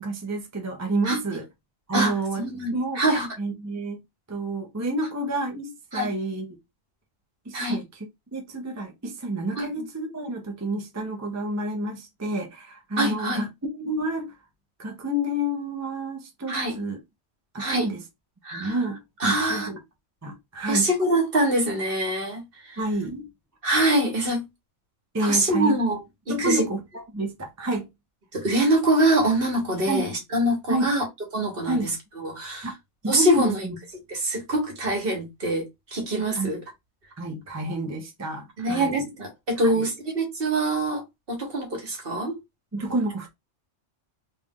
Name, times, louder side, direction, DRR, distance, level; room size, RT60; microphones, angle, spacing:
voice 1, 0.0-1.5 1.9-3.0 3.4-4.0 4.3-6.6 7.4-13.5 13.7-14.4 14.8-17.0 17.5-18.0 18.5-19.8 20.2-20.9 22.8-23.2 25.1-25.8 26.3-27.9 29.9-30.1 30.7-30.9 31.7-31.9 32.6-32.7 33.0-33.8 36.4-36.5 37.2-39.1 39.6-39.9 42.7-43.3, right 1 dB, 15° right, 0.7 m, -29 dB
voice 2, 1.9-3.3 5.9-6.1 7.5-7.8 9.6-9.7 13.0-13.4 16.5-16.7 17.6-17.9 18.4-18.8 19.2-19.7 20.7-22.8 23.6-24.4 25.2-26.0 26.3-26.7 28.3-31.0 31.3-31.9 32.2-32.7 33.1-33.6 34.1-35.6 35.9-36.6 38.6-41.0 41.3-42.4, right 1 dB, 50° right, 1.4 m, -24 dB
3.2 x 2.6 x 3.6 m
omnidirectional pair, 1.2 m